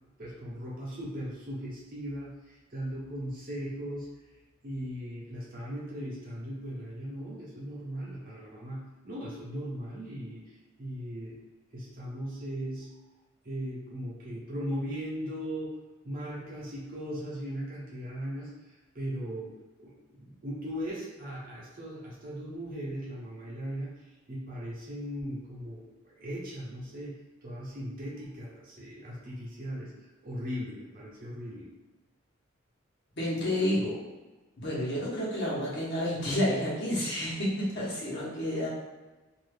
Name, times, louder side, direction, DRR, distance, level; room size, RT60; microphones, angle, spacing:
voice 1, 0.2-4.1 4.6-11.4 11.7-12.9 13.4-15.7 16.0-19.5 19.8-29.9 30.2-31.7, equal, 45° right, -6 dB, 0.8 m, -38 dB
voice 2, 33.2-34.0 34.6-38.7, left 1 dB, 60° left, -7 dB, 1.1 m, -30 dB
2.6 x 2.4 x 3.3 m, 1.2 s
head